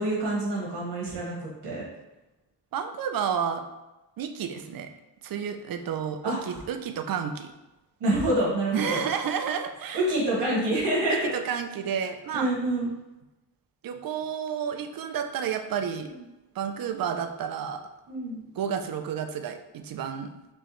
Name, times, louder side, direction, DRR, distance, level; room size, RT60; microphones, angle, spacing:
voice 1, 0.0-1.9 6.2-6.6 8.0-9.0 9.9-11.3 12.3-12.9 18.1-18.4, right 1 dB, 75° right, -5 dB, 1.3 m, -27 dB
voice 2, 2.7-3.6 4.2-4.9 5.2-7.5 8.7-10.1 11.1-12.5 13.8-16.1 16.5-17.8 18.6-20.3, right 7 dB, 55° right, 7 dB, 0.5 m, -31 dB
4.4 x 3.2 x 3.1 m, 1.0 s
wide cardioid pair, 150°, 42 cm